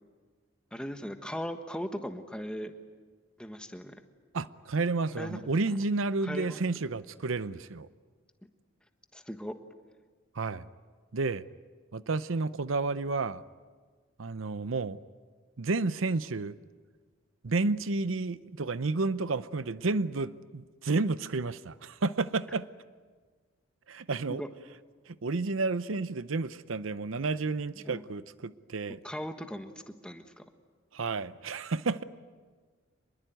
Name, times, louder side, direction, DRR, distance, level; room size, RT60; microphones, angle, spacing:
voice 1, 0.7-2.7 3.4-3.9 5.2-5.4 6.2-6.6 9.1-9.6 24.3-24.5 27.7-28.0 29.0-30.4, equal, 5° left, 7 dB, 1.4 m, -38 dB
voice 2, 4.3-7.9 10.3-10.7 11.1-11.5 11.9-13.4 14.2-15.0 15.6-16.6 17.4-22.7 23.9-24.4 25.1-29.0 30.9-32.0, right 3 dB, 90° right, 15 dB, 0.7 m, -31 dB
25.0 x 21.5 x 9.2 m, 1.5 s
head